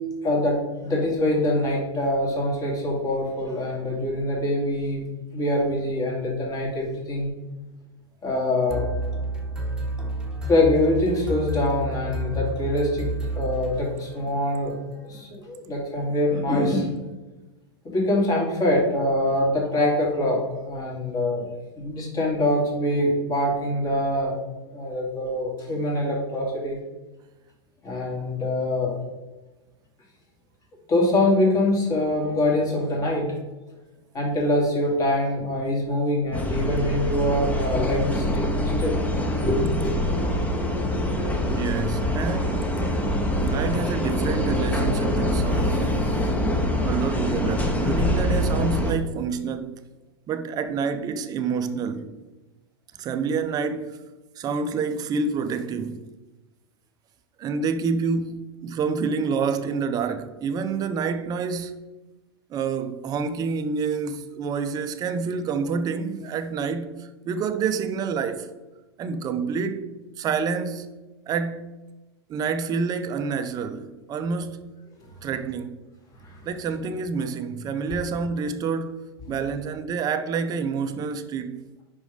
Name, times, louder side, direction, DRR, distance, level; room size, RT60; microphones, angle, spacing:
voice 1, 0.2-5.0 5.3-7.3 8.2-8.8 10.5-13.1 13.3-16.9 17.8-21.5 21.8-24.4 24.7-26.8 27.8-28.9 30.9-33.3 34.1-39.0 39.4-40.0 76.2-76.4, left 1 dB, 25° left, 2.4 m, -24 dB
sound 1, 8.7-14.4, equal, 5° right, 1.3 m, -30 dB
sound 2, 36.3-48.9, left 1 dB, 10° left, 0.9 m, -24 dB
voice 2, 41.5-42.9 43.4-46.1 46.8-49.7 50.3-52.1 53.0-54.0 54.4-56.1 57.4-61.8 62.5-68.5 69.0-69.9 70.2-71.0 71.3-71.7 72.3-74.7 75.2-75.8 76.5-81.6, right 5 dB, 30° right, 0.6 m, -28 dB
5.3 x 4.9 x 5.1 m
hypercardioid pair, 110°, 14 cm